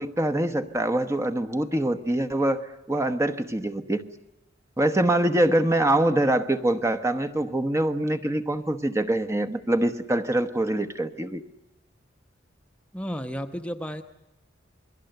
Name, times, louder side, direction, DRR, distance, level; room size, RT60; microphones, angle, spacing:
voice 1, 0.0-4.0 4.8-11.4, right 1 dB, 15° right, 8 dB, 1.1 m, -24 dB
voice 2, 12.9-14.0, equal, 5° left, 7 dB, 1.0 m, -32 dB
28.0 x 21.0 x 8.0 m, 0.94 s
head